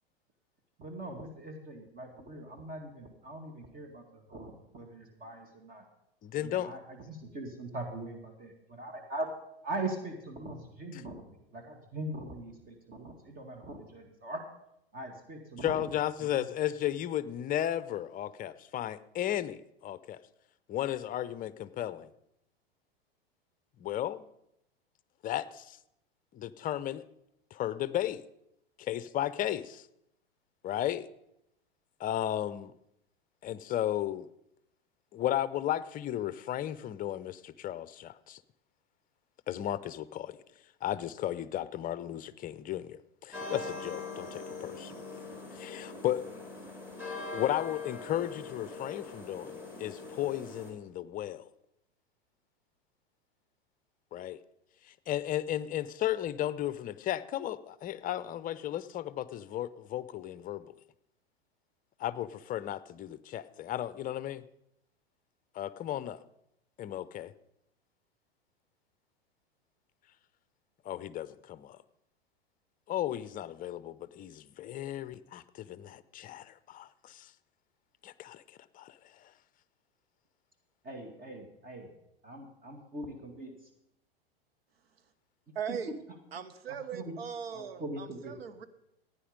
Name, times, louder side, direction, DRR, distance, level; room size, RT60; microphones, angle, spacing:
voice 1, 0.8-5.8 6.4-6.8 7.1-9.3 9.6-14.4 14.9-15.8 16.3-16.5 80.8-81.9 82.2-83.6 85.7-85.8 86.7-87.1 87.5-88.4, right 2 dB, 30° right, 4 dB, 2.3 m, -41 dB
voice 2, 6.2-6.7 10.9-11.0 15.6-20.2 20.7-22.1 23.8-24.3 25.2-25.8 26.3-27.0 27.5-28.2 28.8-29.8 30.6-31.1 32.0-32.7 33.4-34.3 35.1-38.4 39.5-40.4 40.8-45.0 45.5-46.2 47.3-51.4 54.1-54.4 55.1-60.7 62.0-64.4 65.5-66.2 66.8-67.3 70.8-71.8 72.9-77.3 78.0-78.4 78.7-79.0, left 12 dB, 25° left, 16 dB, 0.6 m, -34 dB
sound 1, 43.3-50.7, left 3 dB, 5° right, 3.5 m, -42 dB
voice 3, 85.5-86.0 86.3-88.7, right 7 dB, 80° right, 11 dB, 1.1 m, -39 dB
15.5 x 9.6 x 5.2 m, 0.81 s
hypercardioid pair, 100°, 30 cm